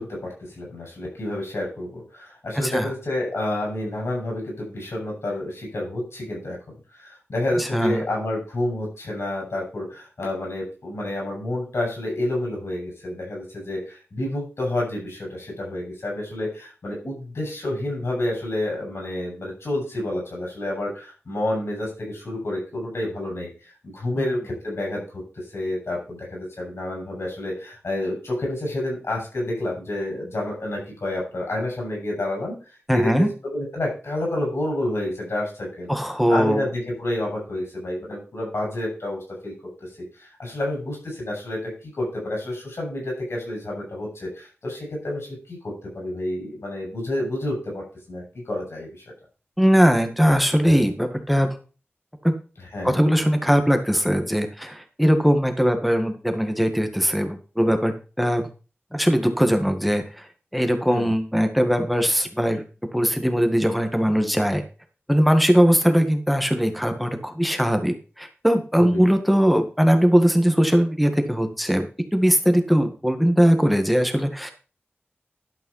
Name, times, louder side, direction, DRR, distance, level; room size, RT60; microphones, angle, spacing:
voice 1, 0.0-6.6 7.0-23.5 23.8-25.2 25.5-32.6 32.9-35.9 36.3-39.5 40.2-49.0 52.7-53.0 60.9-61.1 68.8-69.1, left 1 dB, 80° left, -1 dB, 7.3 m, -29 dB
voice 2, 2.5-2.9 7.6-8.1 24.2-24.3 32.9-33.3 35.9-36.6 49.6-51.6 52.2-52.3 52.8-58.4 58.9-60.3 60.5-62.6 62.9-64.6 65.1-71.9 72.1-74.5, equal, ahead, 6 dB, 1.7 m, -20 dB
12.0 x 5.6 x 5.6 m, 0.35 s
wide cardioid pair, 65°, 4 cm